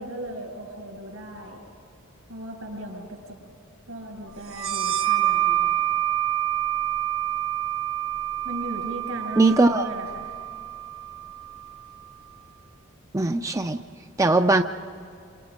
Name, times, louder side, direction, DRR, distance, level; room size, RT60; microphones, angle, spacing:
voice 1, 0.0-1.6 2.3-3.4 3.9-5.8 8.4-10.3, right 1 dB, 90° right, 2 dB, 7.3 m, -37 dB
sound 1, 4.5-11.8, right 12 dB, 75° right, 0.9 m, -27 dB
voice 2, 9.4-9.9 13.1-13.8 14.2-14.6, right 2 dB, 15° right, 7 dB, 0.5 m, -19 dB
27.5 x 27.5 x 5.2 m, 2.6 s
head